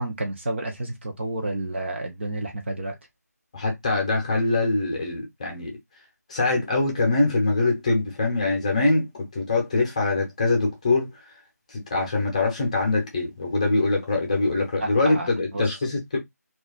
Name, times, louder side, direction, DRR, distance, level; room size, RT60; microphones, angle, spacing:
voice 1, 0.0-2.9 14.8-15.6, right 2 dB, 45° right, 0.7 m, -30 dB
voice 2, 3.5-5.8 6.3-11.2 11.7-16.2, left 3 dB, 25° left, 0.8 m, -23 dB
2.4 x 2.3 x 3.8 m
figure-of-eight pair, 160°, 9 cm